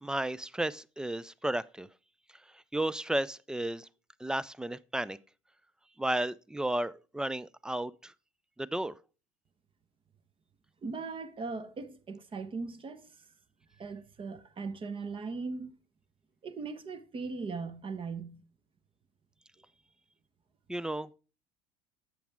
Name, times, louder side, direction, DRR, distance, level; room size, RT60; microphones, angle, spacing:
voice 1, 0.0-1.9 2.7-3.9 4.2-5.2 6.0-8.1 8.6-8.9 20.7-21.1, right 1 dB, 5° right, 0.4 m, -33 dB
voice 2, 10.8-13.2 13.8-15.7 16.4-18.4, right 4 dB, 30° right, 1.0 m, -39 dB
8.5 x 7.2 x 3.6 m
hypercardioid pair, 75°, 18 cm